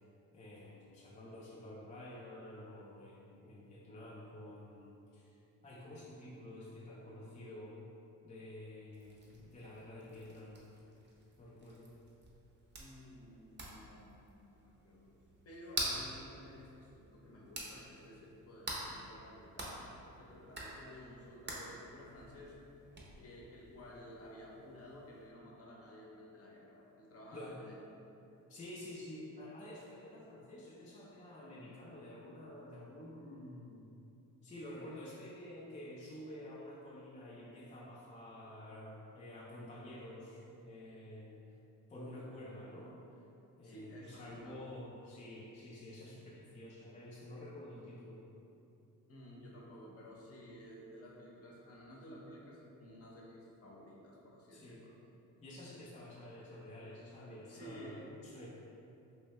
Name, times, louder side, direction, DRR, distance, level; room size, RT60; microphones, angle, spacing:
voice 1, 0.3-7.8 8.2-10.6 11.4-11.9 15.8-15.9 27.3-27.6 28.5-33.9 34.4-41.3 41.9-42.9 43.6-48.2 54.5-54.9 55.4-58.5, left 1 dB, 20° left, -6 dB, 0.4 m, -50 dB
sound 1, 8.9-25.3, right 1 dB, 30° right, 0.7 m, -47 dB
voice 2, 12.8-15.1 15.4-19.7 20.2-22.6 23.2-27.8 43.6-44.6 49.1-54.9 57.5-58.1, equal, 40° left, -3 dB, 0.8 m, -53 dB
3.2 x 2.7 x 3.1 m, 2.8 s
cardioid pair, 95°, 35 cm